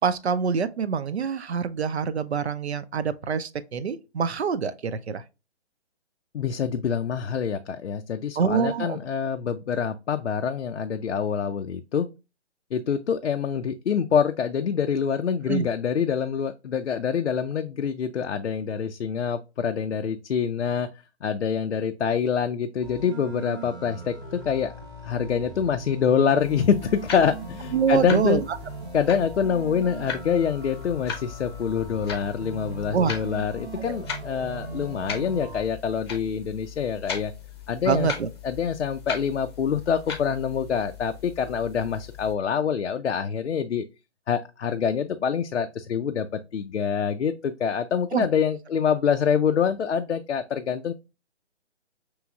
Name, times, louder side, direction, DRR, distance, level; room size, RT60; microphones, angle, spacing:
voice 1, 0.0-5.2 8.4-9.0 15.5-15.7 27.7-28.6 32.9-33.2 33.8-34.0 37.8-38.3 48.1-48.3, right 6 dB, 70° right, 0.6 m, -25 dB
voice 2, 6.3-12.1 12.7-20.9 21.2-24.7 25.0-28.4 28.9-37.3 37.7-38.1 38.4-43.8 44.3-50.9, left 7 dB, 80° left, 0.5 m, -26 dB
sound 1, 22.8-35.6, right 3 dB, 15° right, 0.7 m, -39 dB
sound 2, 26.4-42.3, left 7 dB, 25° left, 0.7 m, -39 dB
6.0 x 3.1 x 2.3 m
figure-of-eight pair, 145°, 34 cm